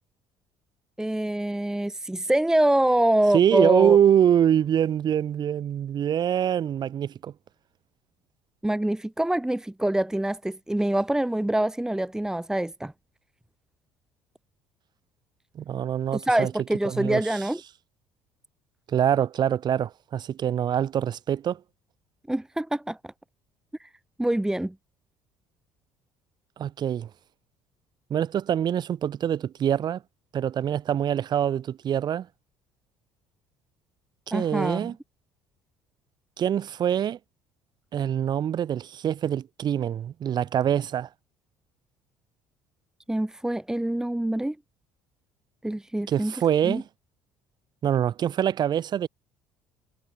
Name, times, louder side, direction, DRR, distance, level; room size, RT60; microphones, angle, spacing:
voice 1, 1.0-4.0 8.6-12.9 16.1-17.6 22.3-23.1 23.8-23.9 24.2-24.7 34.3-34.9 43.1-44.5 45.6-46.3 46.6-46.8, right 1 dB, 5° right, 1.6 m, -25 dB
voice 2, 3.3-7.3 15.6-16.5 16.9-17.4 18.9-21.6 26.6-27.1 28.1-30.0 30.3-32.3 34.3-34.9 36.4-37.2 37.9-41.1 46.1-46.9 47.8-49.1, right 9 dB, 50° right, 6.9 m, -24 dB
supercardioid pair, 75°, 9 cm